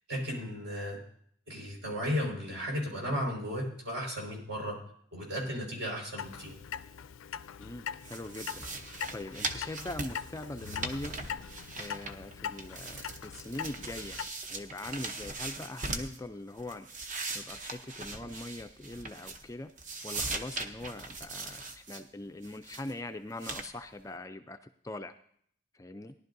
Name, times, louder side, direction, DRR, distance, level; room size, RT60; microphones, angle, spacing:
voice 1, 0.1-1.0 1.5-4.7 5.1-6.5, equal, 65° right, -1 dB, 4.9 m, -34 dB
Clock, 6.2-14.3, left 8 dB, 80° left, 0.4 m, -42 dB
voice 2, 7.6-11.2 11.8-14.2 14.5-16.9 17.3-19.7 20.0-24.6 24.8-25.1 25.7-26.1, left 2 dB, 15° left, 8 dB, 0.4 m, -42 dB
sound 1, 8.0-12.3 12.6-16.2 16.6-19.5 19.8-22.0 22.4-22.9 23.4-23.7, right 3 dB, 40° right, 0.8 m, -40 dB
18.0 x 11.5 x 2.7 m, 0.64 s
head